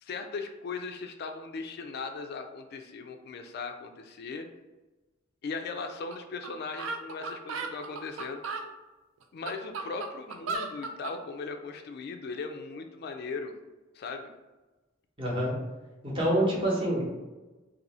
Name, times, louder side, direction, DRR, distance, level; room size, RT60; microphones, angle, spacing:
voice 1, 0.0-4.5 5.4-8.6 9.3-13.5 13.9-14.3, left 4 dB, 55° left, 6 dB, 0.3 m, -38 dB
sound 1, 6.1-6.2 6.4-6.5 6.8-8.7 9.2-11.2, right 4 dB, 90° right, 0.4 m, -35 dB
voice 2, 15.2-15.5 16.0-17.0, right 1 dB, 25° right, -4 dB, 0.9 m, -26 dB
2.6 x 2.6 x 4.2 m, 1.2 s
head